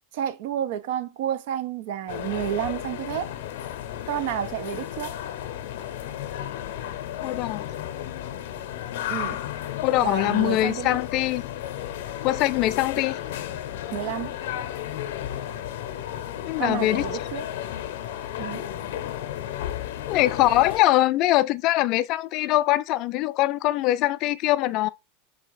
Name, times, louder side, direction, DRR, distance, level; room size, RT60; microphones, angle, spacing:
voice 1, 0.1-3.3 4.1-5.2 9.1-9.4 10.0-11.0 13.9-14.3 16.6-17.5 18.4-18.6, right 10 dB, 65° right, 0.6 m, -30 dB
sound 1, 2.1-20.8, left 11 dB, 75° left, 0.7 m, -33 dB
voice 2, 7.2-7.7 9.8-11.4 12.2-13.2 16.5-17.0 20.1-24.9, left 16 dB, 40° left, 0.3 m, -22 dB
4.1 x 2.8 x 4.7 m
supercardioid pair, 150°, 0 cm